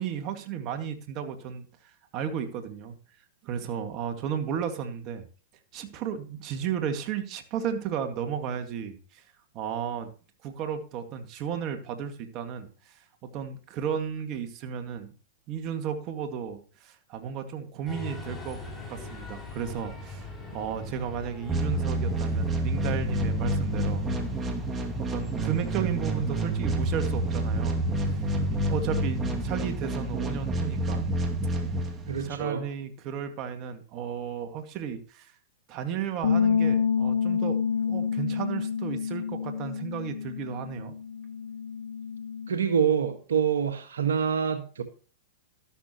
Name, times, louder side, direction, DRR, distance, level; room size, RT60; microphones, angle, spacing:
voice 1, 0.0-2.9 3.4-5.3 5.7-9.2 9.5-10.1 10.4-15.1 15.5-18.6 18.9-24.0 25.0-31.1 32.2-35.3 35.7-40.9, right 8 dB, 40° right, 2.1 m, -34 dB
sound 1, 17.8-29.6, left 3 dB, 10° left, 6.5 m, -41 dB
sound 2, 21.5-32.4, right 1 dB, 20° right, 2.4 m, -28 dB
voice 2, 32.1-32.7 42.5-44.8, right 7 dB, 85° right, 1.6 m, -26 dB
sound 3, 36.2-42.5, left 6 dB, 65° left, 2.7 m, -28 dB
13.0 x 12.0 x 3.0 m
hypercardioid pair, 120°, 0 cm